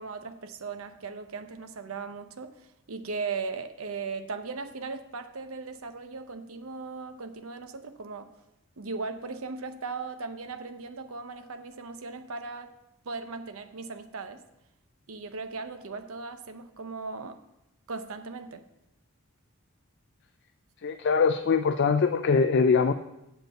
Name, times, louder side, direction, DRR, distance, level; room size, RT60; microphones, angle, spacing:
voice 1, 0.0-8.3 8.8-12.7 13.0-14.4 15.1-17.4 17.9-18.6, right 4 dB, 75° right, 8 dB, 0.8 m, -38 dB
voice 2, 20.8-22.9, left 5 dB, 50° left, 8 dB, 0.4 m, -22 dB
7.6 x 5.4 x 7.5 m, 0.89 s
head